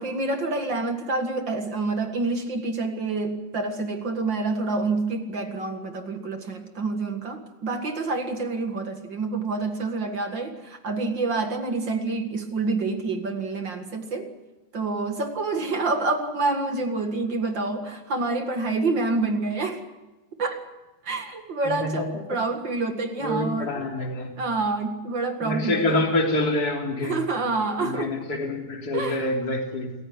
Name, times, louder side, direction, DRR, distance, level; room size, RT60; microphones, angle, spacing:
voice 1, 0.0-14.3 14.7-19.8 20.4-20.6 21.0-23.9 24.4-26.1 27.0-28.1 28.9-29.3, right 3 dB, 40° right, 6 dB, 2.0 m, -27 dB
voice 2, 23.2-24.3 25.4-27.2 27.8-29.9, left 2 dB, 25° left, 1 dB, 3.8 m, -26 dB
28.0 x 14.5 x 9.3 m, 1.1 s
omnidirectional pair, 4.1 m